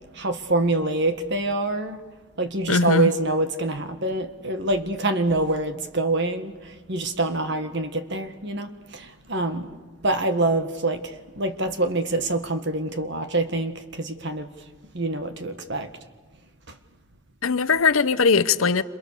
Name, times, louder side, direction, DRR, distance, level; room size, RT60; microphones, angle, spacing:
voice 1, 0.2-2.0 2.4-6.5 6.9-9.7 10.0-14.5 14.9-15.9, right 2 dB, 55° right, 1.7 m, -25 dB
voice 2, 2.7-3.1 17.4-18.8, left 4 dB, 75° left, 0.8 m, -20 dB
29.0 x 27.5 x 6.9 m
head